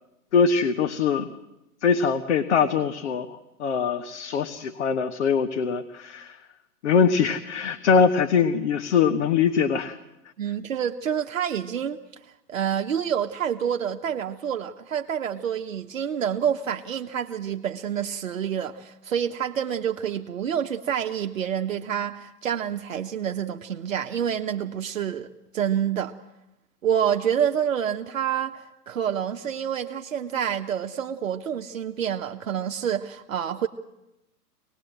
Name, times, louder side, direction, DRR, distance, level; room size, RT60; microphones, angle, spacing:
voice 1, 0.3-1.3 1.8-6.4 6.8-10.0, left 6 dB, 45° left, 7 dB, 1.4 m, -22 dB
voice 2, 10.4-12.0 12.5-25.3 25.5-26.1 26.8-33.7, right 9 dB, 55° right, 4 dB, 1.1 m, -28 dB
25.0 x 19.5 x 7.9 m, 0.93 s
figure-of-eight pair, 120°, 47 cm